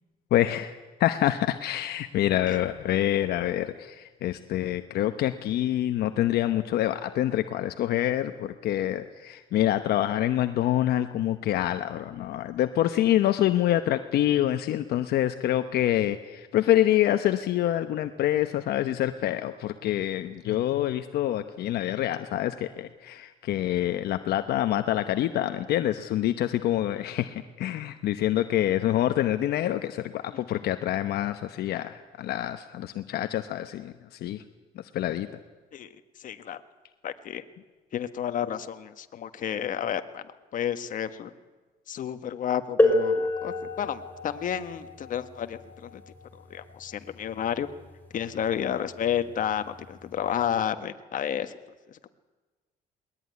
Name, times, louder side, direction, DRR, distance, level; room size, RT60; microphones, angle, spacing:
voice 1, 0.3-34.4 34.9-35.3, left 12 dB, 70° left, 8 dB, 1.0 m, -26 dB
voice 2, 36.2-36.6 37.0-37.4 37.9-40.2 40.5-41.3 41.9-46.0 46.5-47.7 48.1-51.5 51.9-52.1, left 9 dB, 50° left, 9 dB, 1.4 m, -31 dB
sound 1, 42.8-48.2 49.3-49.4 50.2-50.4, left 1 dB, 10° left, 4.4 m, -29 dB
21.0 x 20.0 x 9.5 m, 1.3 s
cardioid pair, 110°, 17 cm